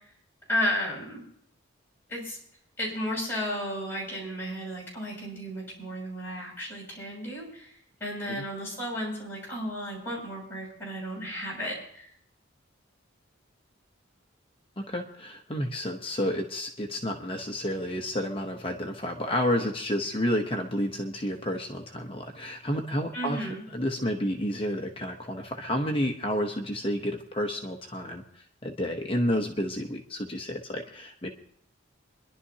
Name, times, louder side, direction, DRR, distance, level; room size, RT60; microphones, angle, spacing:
voice 1, 0.5-1.2 2.1-2.4 2.8-12.1 23.1-23.6, equal, 10° left, -6 dB, 6.6 m, -33 dB
voice 2, 14.8-23.4 23.7-31.3, equal, 25° left, 2 dB, 0.9 m, -30 dB
27.5 x 11.0 x 2.8 m, 0.66 s
head